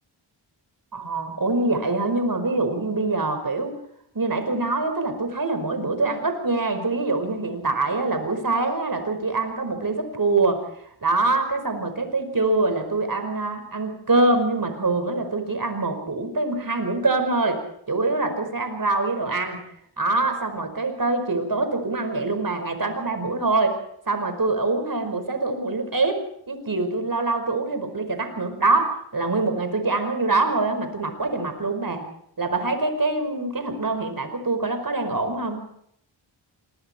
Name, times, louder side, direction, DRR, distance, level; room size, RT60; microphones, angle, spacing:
voice 1, 0.9-3.8 4.1-10.6 11.0-17.6 17.9-19.6 20.0-23.8 24.1-32.0 32.4-35.7, right 3 dB, 45° right, 7 dB, 5.3 m, -24 dB
27.0 x 21.5 x 4.5 m, 0.70 s
cardioid pair, 55°, 47 cm